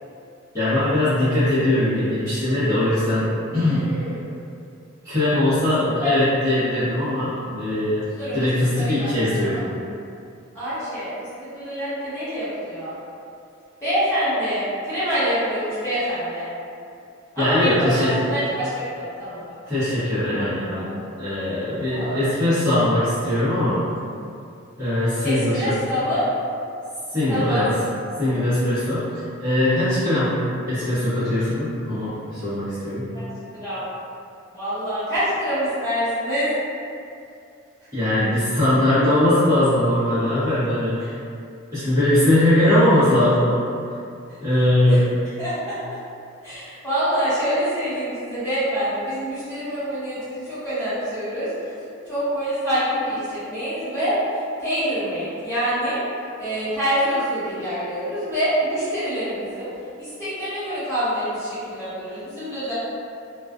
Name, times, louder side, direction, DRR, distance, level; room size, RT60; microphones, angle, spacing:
voice 1, 0.5-3.9 5.0-8.1 8.3-9.7 17.4-18.2 19.7-20.9 21.2-23.9 24.8-25.8 27.1-27.7 28.2-29.1 29.4-33.2 37.9-41.1 41.7-43.6 44.4-45.1, left 1 dB, 15° right, -18 dB, 0.8 m, -20 dB
voice 2, 3.7-4.3 6.0-6.1 8.1-8.4 8.7-9.1 9.4-9.6 10.5-11.1 11.5-12.9 13.8-16.5 17.3-19.4 21.9-22.2 25.2-26.3 27.3-27.7 33.1-33.3 33.6-33.8 34.5-36.5 44.9-45.0 45.4-46.0 46.4-51.7 52.1-54.1 54.6-56.0 56.4-59.7 60.0-62.7, equal, 10° left, -17 dB, 1.2 m, -26 dB
2.3 x 2.3 x 2.3 m, 2.4 s
head